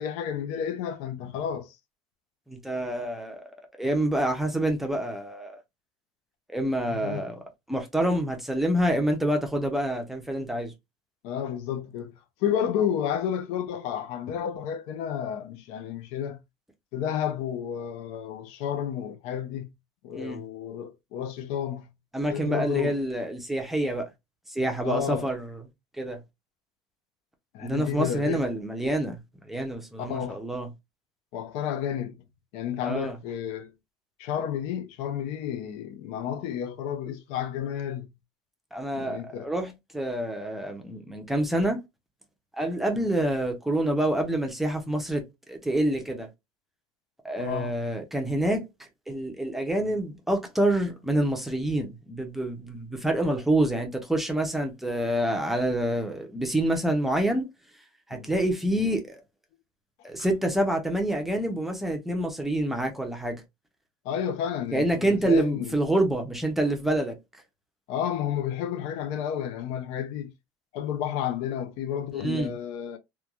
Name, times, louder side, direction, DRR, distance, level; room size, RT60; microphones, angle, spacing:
voice 1, 0.0-1.8 6.9-7.3 11.2-12.1 12.4-16.4 16.9-19.7 20.0-21.9 22.3-23.0 24.8-25.3 27.5-28.4 30.0-30.5 31.3-32.2 32.5-33.7 34.2-38.1 38.9-39.5 47.4-47.8 58.1-58.3 64.0-65.7 67.9-70.3 70.7-73.0, left 9 dB, 70° left, 0.5 m, -31 dB
voice 2, 2.5-3.4 3.8-5.6 6.5-7.4 7.7-10.7 20.1-20.4 22.1-24.0 24.5-25.6 26.0-26.2 27.6-29.2 29.4-30.7 32.8-33.2 38.7-41.8 42.6-45.2 45.5-46.3 47.2-48.6 49.1-57.5 58.1-59.2 60.0-63.4 64.7-67.1 72.2-72.5, right 1 dB, ahead, 0.5 m, -27 dB
3.0 x 2.2 x 2.3 m
cardioid pair, 170°, 11 cm